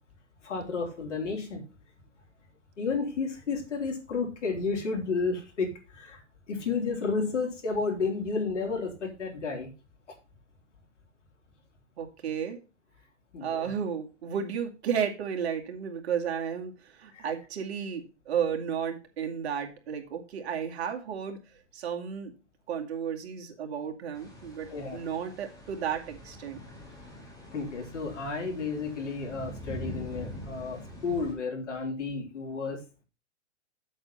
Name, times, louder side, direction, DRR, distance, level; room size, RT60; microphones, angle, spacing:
voice 1, 0.4-1.6 2.8-6.2 6.5-9.7 13.3-13.7 17.1-17.3 24.7-25.0 27.5-32.8, left 4 dB, 80° left, 1 dB, 3.6 m, -32 dB
voice 2, 12.0-12.6 13.4-21.4 21.7-22.3 22.7-26.6, right 7 dB, 60° right, 3 dB, 2.3 m, -33 dB
sound 1, 24.1-31.3, left 1 dB, 10° left, 4.5 m, -44 dB
7.9 x 6.9 x 5.7 m, 0.32 s
hypercardioid pair, 130°, 36 cm